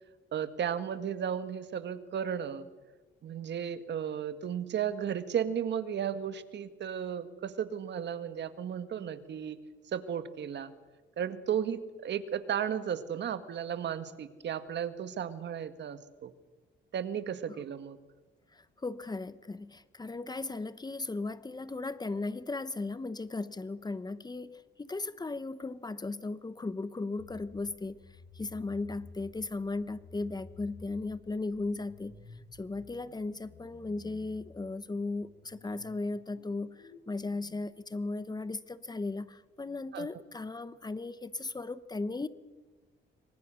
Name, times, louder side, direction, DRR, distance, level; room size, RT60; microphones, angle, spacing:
voice 1, 0.3-2.6 3.2-9.6 9.9-10.7 11.2-16.3 16.9-18.0 39.9-40.1, right 8 dB, 60° right, 11 dB, 1.8 m, -34 dB
voice 2, 18.5-28.0 28.3-32.2 32.5-42.3, left 3 dB, 20° left, 15 dB, 1.0 m, -36 dB
sound 1, 27.2-37.5, left 3 dB, 85° left, 6.4 m, -54 dB
26.5 x 24.0 x 6.4 m, 1.2 s
cardioid pair, 90°, 20 cm